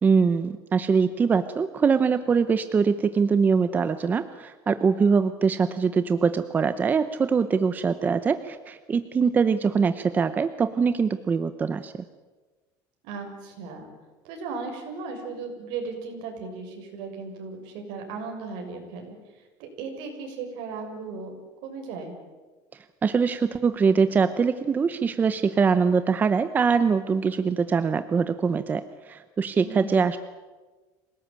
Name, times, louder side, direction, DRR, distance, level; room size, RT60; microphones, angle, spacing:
voice 1, 0.0-12.0 23.0-30.2, right 5 dB, 20° right, 11 dB, 0.8 m, -23 dB
voice 2, 13.0-13.9 14.2-22.1 29.6-30.1, right 4 dB, 65° right, 3 dB, 6.5 m, -36 dB
26.5 x 18.5 x 8.8 m, 1.3 s
cardioid pair, 160°, 9 cm